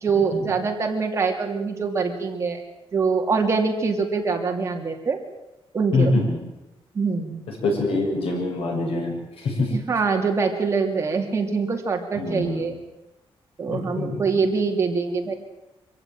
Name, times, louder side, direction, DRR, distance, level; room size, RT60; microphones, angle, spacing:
voice 1, 0.0-2.6 2.9-5.2 5.7-6.1 6.9-7.4 9.7-12.7 13.6-15.3, right 4 dB, 30° right, 3 dB, 2.9 m, -24 dB
voice 2, 5.9-6.4 7.6-9.7 12.2-12.7 13.7-14.2, left 2 dB, 80° left, 1 dB, 7.5 m, -25 dB
25.0 x 15.5 x 9.3 m, 0.96 s
wide cardioid pair, 170°, 10 cm